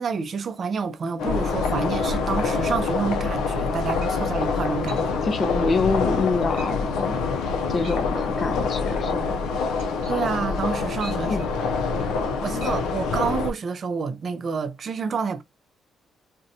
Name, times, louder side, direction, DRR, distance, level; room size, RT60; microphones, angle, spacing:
voice 1, 0.0-5.2 10.1-11.5 12.4-15.4, right 5 dB, 50° right, 0.4 m, -28 dB
sound 1, 1.2-13.5, left 4 dB, 90° left, 0.4 m, -26 dB
sound 2, 3.6-3.7 4.0-4.4 4.9-5.1 5.5-5.8 6.1-6.3 6.6-6.7 7.0-7.2 7.7-8.1 8.4-12.3 12.6-12.8 13.2-13.3, right 3 dB, 90° right, 0.8 m, -44 dB
voice 2, 5.2-7.2 7.7-9.3 11.3-11.5, left 4 dB, 45° left, 0.6 m, -26 dB
2.6 x 2.1 x 2.5 m
cardioid pair, 90°, 0 cm